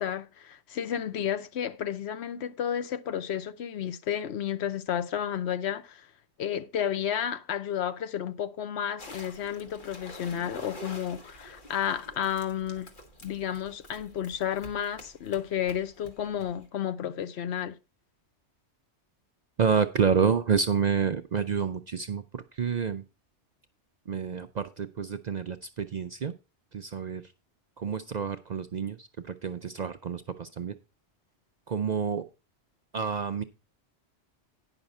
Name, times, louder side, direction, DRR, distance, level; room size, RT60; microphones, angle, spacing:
voice 1, 0.0-6.1 6.4-12.9 13.2-17.8, left 9 dB, 70° left, 0.9 m, -32 dB
sound 1, 9.0-16.7, left 1 dB, 45° left, 1.7 m, -48 dB
voice 2, 19.6-23.0 24.1-26.3 26.7-27.2 27.8-30.7 31.7-32.3 32.9-33.4, right 6 dB, 50° right, 0.5 m, -28 dB
9.9 x 5.8 x 5.3 m
omnidirectional pair, 1.2 m